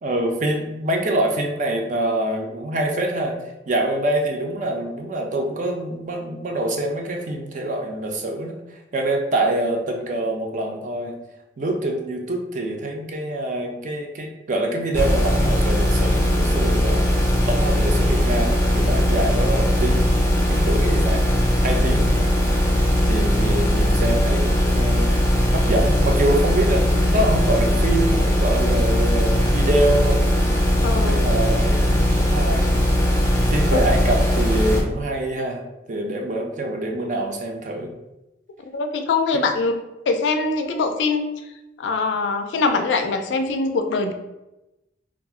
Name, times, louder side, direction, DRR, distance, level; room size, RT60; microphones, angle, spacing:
voice 1, 0.0-3.4 3.7-8.6 8.9-11.2 11.6-17.1 17.5-20.2 20.5-21.3 21.6-22.3 23.1-25.1 25.5-30.2 31.0-32.8 33.5-37.9, right 1 dB, 45° right, 2 dB, 0.4 m, -25 dB
sound 1, 14.9-34.8, equal, 15° left, 0.5 m, -19 dB
voice 2, 30.8-31.2 38.7-39.7 40.1-41.2 41.8-44.1, left 3 dB, 70° left, 6 dB, 0.3 m, -22 dB
2.4 x 2.0 x 3.5 m, 0.97 s
head